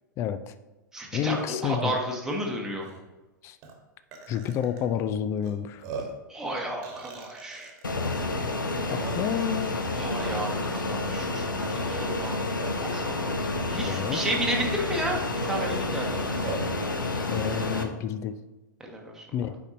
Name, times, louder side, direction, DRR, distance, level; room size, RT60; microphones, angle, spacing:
voice 1, 0.2-0.5 1.1-2.0 3.4-3.6 4.3-5.8 8.9-9.8 13.8-14.2 17.3-18.3 19.3-19.5, left 9 dB, 25° left, 12 dB, 0.4 m, -29 dB
voice 2, 0.9-2.9 6.3-7.8 9.9-15.2 15.4-16.3 18.8-19.3, right 1 dB, 5° right, -1 dB, 1.1 m, -32 dB
Burping eructation, 2.3-2.4 2.8-3.0 3.6-3.7 4.1-4.8 5.4-5.5 5.8-6.2 6.8-7.8 8.5-8.6 8.9-9.5 10.2-10.5 12.1-13.0 13.8-13.9 14.3-14.4 15.4-16.7, right 3 dB, 35° right, 1.3 m, -39 dB
Fixed-wing aircraft airplane, 7.8-17.8, left 2 dB, 75° left, 0.8 m, -29 dB
8.3 x 5.3 x 2.7 m, 1.1 s
figure-of-eight pair, 105°, 11 cm